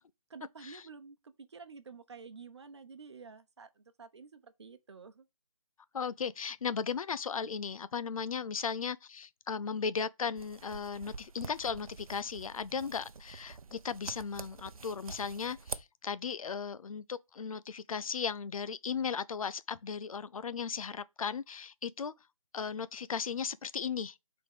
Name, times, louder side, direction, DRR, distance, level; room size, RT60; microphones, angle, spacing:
voice 1, 0.3-5.3, right 5 dB, 50° right, 1.0 m, -50 dB
voice 2, 5.9-22.1 22.5-24.2, left 6 dB, 75° left, 0.5 m, -36 dB
sound 1, 10.4-15.8, right 5 dB, 75° right, 0.7 m, -46 dB
5.0 x 3.9 x 5.0 m
hypercardioid pair, 170°, 18 cm